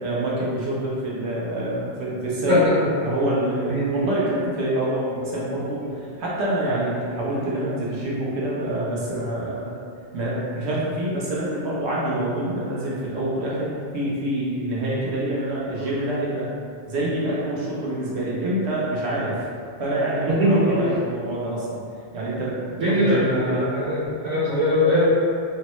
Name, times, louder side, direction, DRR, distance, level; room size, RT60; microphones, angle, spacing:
voice 1, 0.0-2.7 3.0-9.7 10.1-16.5 16.9-19.4 19.8-21.8 22.1-23.7, right 1 dB, 80° right, -6 dB, 1.0 m, -26 dB
voice 2, 3.7-4.1 5.8-5.9 15.7-15.9 20.3-20.8 22.8-25.1, equal, 60° right, -13 dB, 1.5 m, -21 dB
3.4 x 2.0 x 2.9 m, 2.4 s
omnidirectional pair, 1.1 m